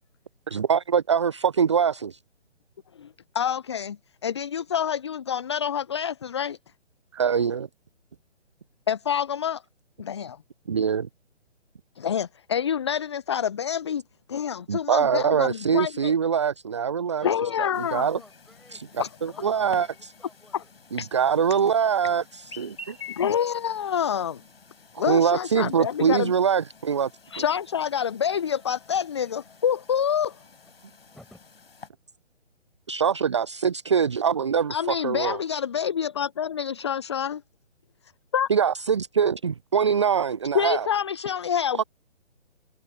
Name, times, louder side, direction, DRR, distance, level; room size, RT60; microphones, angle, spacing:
voice 1, 0.5-2.2 7.1-7.7 10.7-11.1 14.7-17.3 17.6-17.7 17.9-18.2 18.7-18.9 19.2-19.9 20.9-23.0 24.9-27.1 32.9-35.4 38.5-40.9 41.7-41.8, right 7 dB, 25° right, 0.6 m, -23 dB
voice 2, 3.3-4.0 4.2-6.6 8.9-9.6 10.0-10.4 12.0-14.0 14.3-16.1 17.2-18.1 19.0-19.1 20.5-20.6 21.0-21.1 23.2-24.4 25.0-26.3 27.3-30.3 34.7-37.4 38.3-38.5 40.5-41.8, left 8 dB, 25° left, 0.7 m, -27 dB
voice 3, 17.1-20.7 29.2-29.3 30.6-30.7 31.1-31.4, left 1 dB, ahead, 7.8 m, -50 dB
Chirp tweet, 17.7-31.9, left 4 dB, 55° left, 4.8 m, -49 dB
figure-of-eight pair, 140°, 35 cm